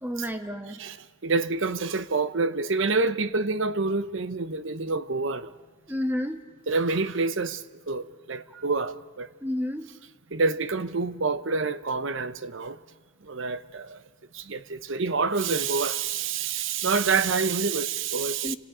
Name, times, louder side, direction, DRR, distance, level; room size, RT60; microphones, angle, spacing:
voice 1, 0.0-0.8 5.9-6.4 9.4-9.9 18.4-18.6, left 1 dB, 10° right, 1.4 m, -30 dB
voice 2, 1.2-5.5 6.7-9.3 10.3-12.8 13.2-14.0 14.3-18.6, right 4 dB, 60° right, 0.8 m, -27 dB
29.5 x 26.5 x 5.0 m
head